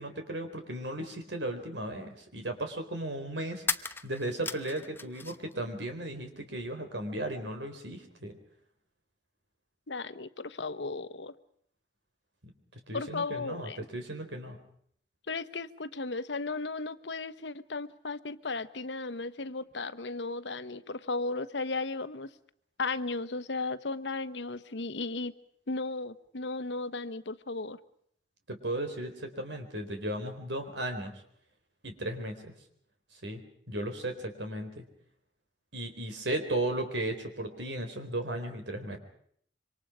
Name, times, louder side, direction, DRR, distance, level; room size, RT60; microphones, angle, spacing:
voice 1, 0.0-8.4 12.9-14.6 28.5-31.1 31.8-32.5 33.2-34.8 35.7-39.0, right 1 dB, 90° right, 6 dB, 4.2 m, -36 dB
sound 1, 3.6-5.5 5.8-6.7, left 4 dB, 15° left, 0.8 m, -37 dB
voice 2, 9.9-11.3 12.9-13.9 15.3-22.3 22.8-25.3 25.7-27.8, left 3 dB, 85° left, 13 dB, 1.1 m, -35 dB
26.5 x 25.0 x 5.0 m, 0.63 s
head